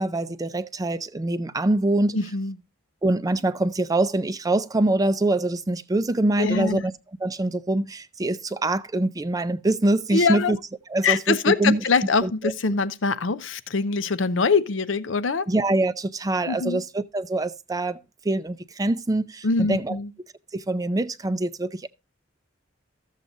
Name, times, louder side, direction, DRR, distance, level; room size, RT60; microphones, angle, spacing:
voice 1, 0.0-2.2 3.0-6.9 7.2-10.6 10.9-11.8 12.2-12.3 15.5-20.0 20.5-21.9, right 2 dB, 20° right, 0.5 m, -24 dB
voice 2, 2.1-2.5 6.4-6.8 10.1-10.5 11.0-15.5 16.4-16.8 19.4-20.1, left 4 dB, 75° left, 0.6 m, -23 dB
14.0 x 7.4 x 2.6 m
head